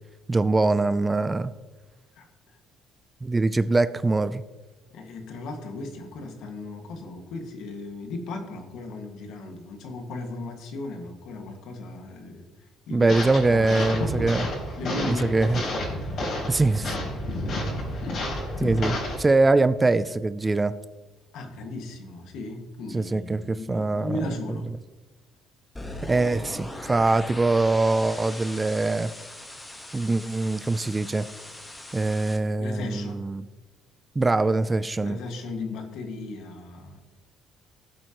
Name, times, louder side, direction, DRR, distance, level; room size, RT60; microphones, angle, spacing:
voice 1, 0.3-1.5 3.2-4.4 12.9-14.4 15.0-15.6 16.5-16.9 18.6-20.8 22.9-24.1 26.1-29.1 29.9-31.3 31.9-33.4 34.2-35.2, right 3 dB, 15° right, 14 dB, 0.4 m, -23 dB
voice 2, 2.1-2.6 4.9-13.1 13.5-14.4 14.8-15.4 18.0-18.3 21.3-24.7 32.6-33.2 35.0-37.0, left 2 dB, 70° left, 4 dB, 1.8 m, -36 dB
sound 1, 13.1-19.2, left 1 dB, 45° left, 3.7 m, -30 dB
sound 2, 25.8-32.4, left 1 dB, 10° left, 1.3 m, -40 dB
17.5 x 7.7 x 3.0 m, 1.2 s
cardioid pair, 135°, 0 cm